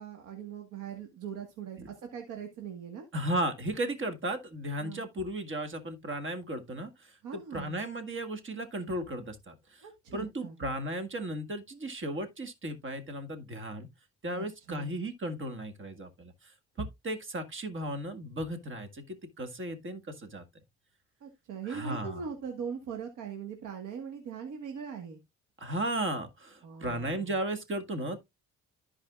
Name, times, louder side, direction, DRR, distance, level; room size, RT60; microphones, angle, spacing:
voice 1, 0.0-3.1 4.8-5.0 7.2-7.7 9.8-10.6 14.3-14.9 21.2-25.2 26.6-27.3, right 7 dB, 90° right, 1.6 m, -41 dB
voice 2, 3.1-9.8 10.1-13.9 14.2-16.5 16.8-20.4 21.6-22.3 25.6-28.2, right 1 dB, 40° right, 1.9 m, -35 dB
14.0 x 4.9 x 2.4 m
cardioid pair, 90°, 30 cm